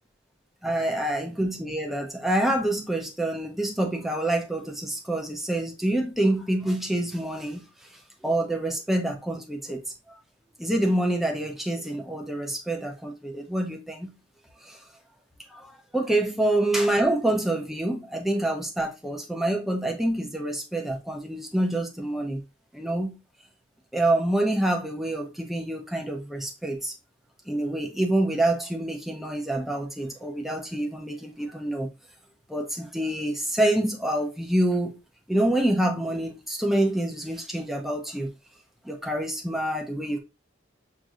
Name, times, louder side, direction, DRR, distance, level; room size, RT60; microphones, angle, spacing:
voice 1, 0.6-7.7 8.2-9.8 10.1-10.2 10.6-14.1 14.6-14.8 15.5-22.4 22.7-23.2 23.9-26.9 27.5-31.9 32.5-35.0 35.3-38.3 38.8-40.2, right 1 dB, ahead, 0.6 m, -27 dB
6.1 x 2.7 x 2.4 m
head